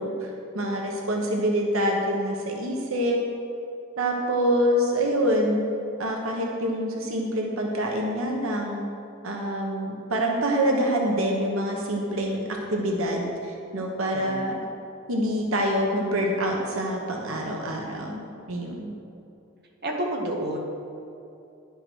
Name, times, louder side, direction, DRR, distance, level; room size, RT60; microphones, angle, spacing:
voice 1, 0.0-3.2 4.0-5.6 6.0-8.8 9.2-14.6 15.1-18.9, equal, 75° right, 0 dB, 1.1 m, -26 dB
voice 2, 14.1-14.5 19.8-20.6, right 1 dB, 50° right, 0 dB, 1.2 m, -29 dB
10.5 x 5.8 x 6.2 m, 2.7 s
head